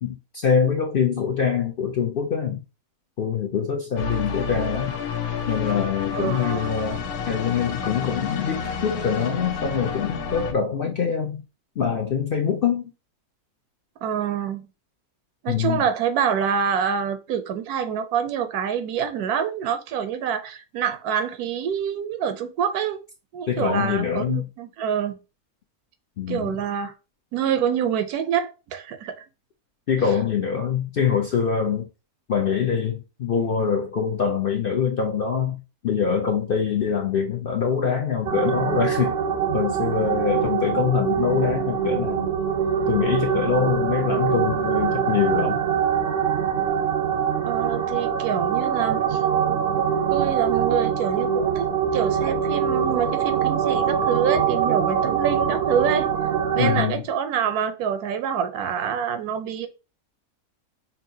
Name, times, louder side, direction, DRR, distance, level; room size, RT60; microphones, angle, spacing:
voice 1, 0.0-2.6 3.2-5.0 5.5-11.4 11.8-12.9 15.5-15.8 23.5-24.4 26.2-26.6 29.9-31.9 32.3-39.2 39.5-42.3 42.9-45.6 56.6-57.0, left 7 dB, 65° left, 0.5 m, -24 dB
sound 1, 4.0-10.5, left 5 dB, 85° left, 1.2 m, -30 dB
voice 2, 6.2-6.7 14.0-14.7 15.4-23.0 23.3-25.2 26.3-26.9 27.3-29.2 47.5-49.2 49.5-49.6 50.1-56.1 56.5-59.7, right 8 dB, 90° right, 1.2 m, -26 dB
sound 2, 38.3-56.9, right 7 dB, 65° right, 0.6 m, -23 dB
5.6 x 2.6 x 2.7 m
omnidirectional pair, 1.6 m